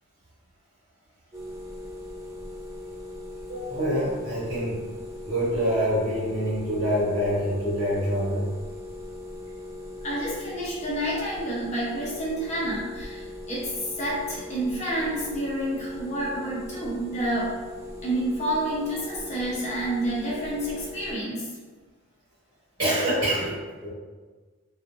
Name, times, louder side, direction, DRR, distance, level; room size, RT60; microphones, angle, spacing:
sound 1, 1.3-21.1, left 2 dB, 15° right, 0.3 m, -40 dB
voice 1, 3.5-4.8 5.2-8.4 22.8-23.5 23.8-23.9, equal, 55° right, -11 dB, 1.1 m, -26 dB
voice 2, 10.0-13.7 14.0-17.5 18.0-21.5, right 1 dB, 35° left, -6 dB, 0.8 m, -29 dB
2.8 x 2.4 x 2.5 m, 1.4 s
head